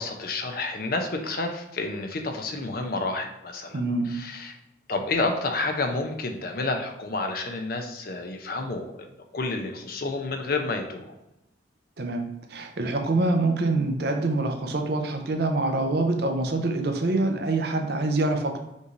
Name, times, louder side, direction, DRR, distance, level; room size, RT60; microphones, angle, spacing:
voice 1, 0.0-3.8 4.1-4.6 4.9-9.1 9.3-11.1, left 3 dB, 50° left, 4 dB, 0.6 m, -30 dB
voice 2, 3.7-4.2 12.0-18.6, right 2 dB, 55° right, 4 dB, 0.6 m, -25 dB
5.3 x 3.1 x 2.6 m, 0.91 s
head